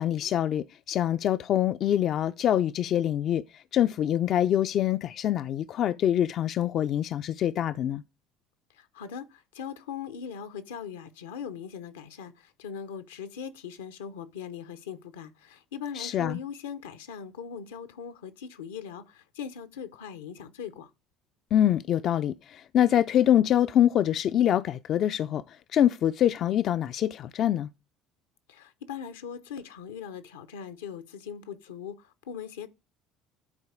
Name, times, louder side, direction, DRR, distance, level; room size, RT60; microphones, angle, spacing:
voice 1, 0.0-8.0 16.0-16.4 21.5-27.7, left 11 dB, 55° left, 0.3 m, -25 dB
voice 2, 8.7-20.9 28.5-32.7, left 7 dB, 85° left, 0.7 m, -40 dB
9.7 x 4.2 x 4.8 m
hypercardioid pair, 70°, 0 cm